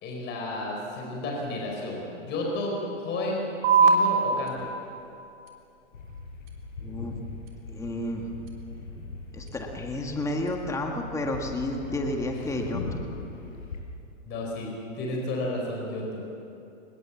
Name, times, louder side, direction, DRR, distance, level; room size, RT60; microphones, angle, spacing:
voice 1, 0.0-4.7 14.3-16.2, left 1 dB, 30° left, -1 dB, 4.8 m, -32 dB
sound 1, 3.6-10.6, right 4 dB, 45° right, 3.5 m, -29 dB
sound 2, 5.9-13.8, left 3 dB, 85° left, 5.7 m, -40 dB
voice 2, 6.8-7.1 7.7-8.3 9.3-13.0, left 1 dB, 10° left, 2 dB, 1.7 m, -31 dB
25.0 x 21.0 x 7.3 m, 2.8 s
hypercardioid pair, 140°, 39 cm